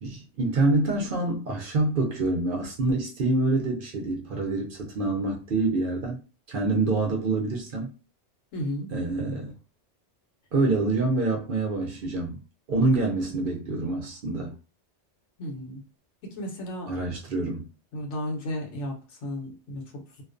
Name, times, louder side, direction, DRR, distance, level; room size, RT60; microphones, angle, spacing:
voice 1, 0.0-6.2 6.5-7.9 8.9-9.5 10.5-12.4 12.7-14.6 16.9-17.7, right 2 dB, 60° right, 0.7 m, -26 dB
voice 2, 8.5-8.9 15.4-15.8 16.2-17.2 17.9-20.2, left 1 dB, 85° left, 1.1 m, -34 dB
2.4 x 2.2 x 2.5 m
omnidirectional pair, 1.2 m